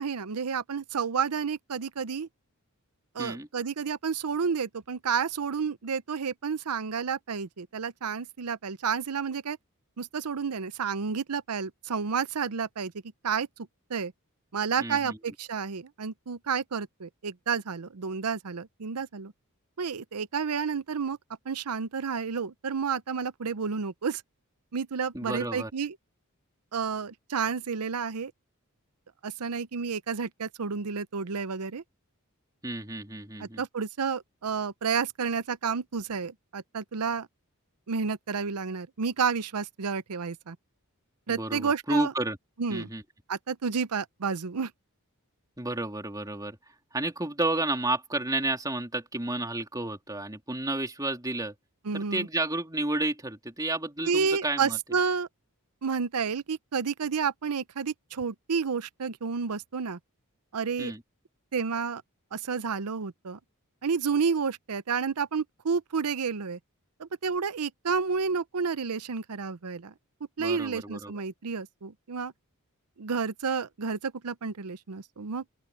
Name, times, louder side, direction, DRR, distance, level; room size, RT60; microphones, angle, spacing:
voice 1, 0.0-2.3 3.1-9.6 10.0-12.9 13.2-13.5 13.9-14.1 14.5-19.3 19.8-21.2 21.5-24.2 24.7-25.9 26.7-28.3 29.2-31.8 33.4-37.3 37.9-40.6 41.3-42.1 42.6-42.9 43.3-44.7 51.9-52.3 54.0-55.3 55.8-60.0 60.5-60.9 61.5-62.0 62.3-63.4 63.8-66.6 67.0-69.9 70.4-72.3 73.0-75.4, right 5 dB, 90° right, 0.7 m, -30 dB
voice 2, 14.8-15.2 25.1-25.7 32.6-33.6 41.3-42.4 42.7-43.0 45.6-46.6 46.9-51.5 51.9-54.8 60.8-61.0 70.4-71.1, right 2 dB, 15° right, 3.4 m, -31 dB
open air
head